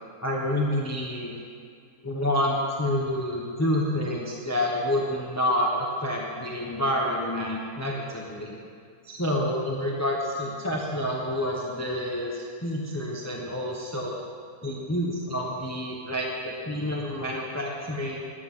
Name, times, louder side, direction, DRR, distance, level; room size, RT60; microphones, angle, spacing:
voice 1, 0.2-1.3 2.0-8.6 9.0-14.2 14.6-18.2, left 1 dB, 10° left, -2 dB, 0.9 m, -28 dB
19.5 x 8.5 x 3.9 m, 2.3 s
omnidirectional pair, 1.8 m